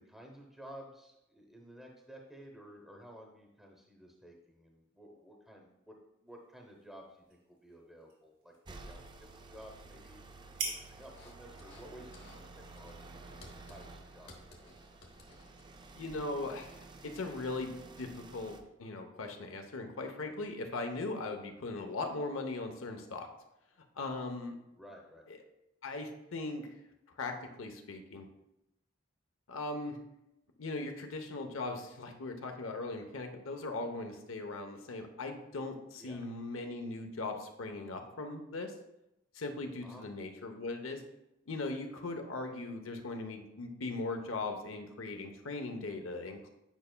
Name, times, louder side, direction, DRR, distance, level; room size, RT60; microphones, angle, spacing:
voice 1, 0.0-5.9 6.2-10.2 10.6-14.7 24.8-25.2 36.0-36.2 39.8-40.1, equal, ahead, 1 dB, 0.8 m, -53 dB
sound 1, 6.3-14.0, right 4 dB, 80° right, 1.9 m, -48 dB
sound 2, 8.6-18.6, right 3 dB, 20° right, 0.4 m, -52 dB
sound 3, 11.0-11.9 12.1-12.5 12.7-16.0, left 2 dB, 55° left, 1.0 m, -58 dB
voice 2, 15.9-23.3 24.0-24.5 25.3-25.4 25.8-26.8 27.2-28.3 29.5-30.0 30.6-38.7 39.3-41.0 41.5-46.5, left 2 dB, 85° left, 5 dB, 0.8 m, -39 dB
9.1 x 5.4 x 2.2 m, 0.88 s
head